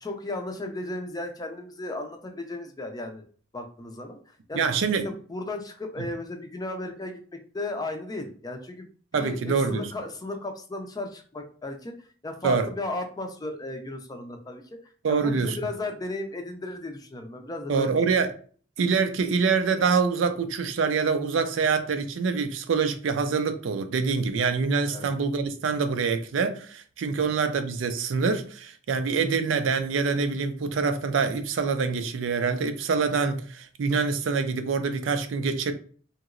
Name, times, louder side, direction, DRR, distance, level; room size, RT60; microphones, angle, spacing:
voice 1, 0.0-3.3 3.5-4.6 5.0-7.2 7.5-8.9 9.1-14.8 15.1-18.0 24.9-25.1 27.2-27.3, left 2 dB, 20° left, 0.4 m, -35 dB
voice 2, 4.5-5.1 9.1-9.9 12.4-12.7 15.0-15.6 17.7-18.3 18.8-35.7, right 5 dB, 80° right, 0.4 m, -25 dB
2.9 x 2.9 x 2.5 m
head